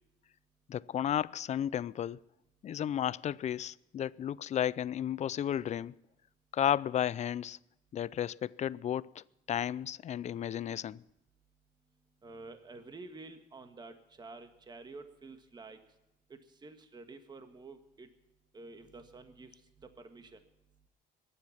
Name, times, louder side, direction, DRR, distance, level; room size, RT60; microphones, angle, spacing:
voice 1, 0.7-2.2 2.6-5.9 6.5-7.6 7.9-11.0, left 10 dB, 45° left, 0.5 m, -33 dB
voice 2, 12.2-15.8 16.3-18.1 18.5-20.4, right 3 dB, 25° right, 1.6 m, -50 dB
23.0 x 10.0 x 5.8 m
cardioid pair, 110°, 17 cm